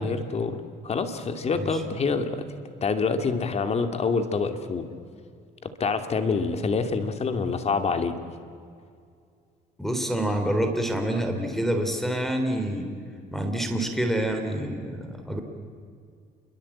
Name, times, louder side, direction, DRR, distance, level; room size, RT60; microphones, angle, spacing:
voice 1, 0.0-2.5 2.8-4.9 5.6-8.2, left 4 dB, 40° left, 8 dB, 2.6 m, -26 dB
voice 2, 9.8-12.9 13.3-15.4, right 1 dB, ahead, 6 dB, 3.5 m, -27 dB
28.5 x 23.0 x 8.7 m, 2.3 s
cardioid pair, 110°, 17 cm